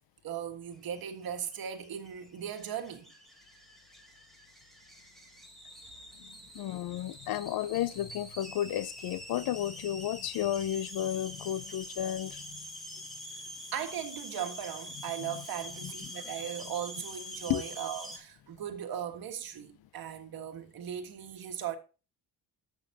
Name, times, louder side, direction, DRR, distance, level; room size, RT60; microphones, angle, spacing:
voice 1, 0.2-3.1 6.3-6.5 13.7-21.8, right 9 dB, 60° right, 1.6 m, -38 dB
sound 1, 0.8-18.2, equal, ahead, 2.1 m, -46 dB
voice 2, 6.2-12.6 15.2-15.4 15.8-15.9 17.5-17.6, left 12 dB, 65° left, 0.6 m, -33 dB
11.5 x 7.8 x 2.7 m
cardioid pair, 125°, 40 cm